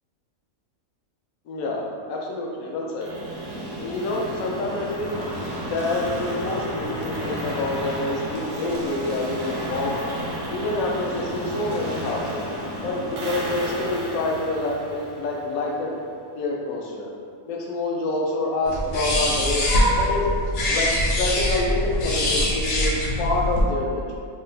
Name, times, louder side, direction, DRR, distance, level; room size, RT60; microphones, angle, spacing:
voice 1, 1.5-3.1 3.8-5.2 5.6-10.0 10.5-12.4 12.8-16.0 16.4-17.1 17.5-19.7 20.0-20.3 20.7-24.1, left 2 dB, 85° left, -1 dB, 1.0 m, -27 dB
sound 1, 3.0-15.9, equal, 55° right, 0.5 m, -32 dB
sound 2, 18.6-23.6, left 1 dB, 60° left, 0.6 m, -23 dB
2.9 x 2.1 x 3.9 m, 2.3 s
omnidirectional pair, 1.5 m